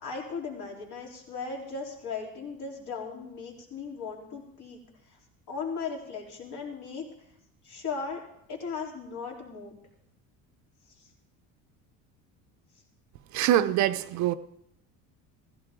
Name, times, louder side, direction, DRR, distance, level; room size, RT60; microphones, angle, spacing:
voice 1, 0.0-4.8 5.1-5.2 5.5-7.1 7.6-8.2 8.5-9.8, left 5 dB, 60° left, -1 dB, 4.0 m, -37 dB
voice 2, 13.3-14.3, right 12 dB, 55° right, 12 dB, 0.6 m, -24 dB
16.0 x 15.0 x 3.8 m, 0.75 s
cardioid pair, 145°, 34 cm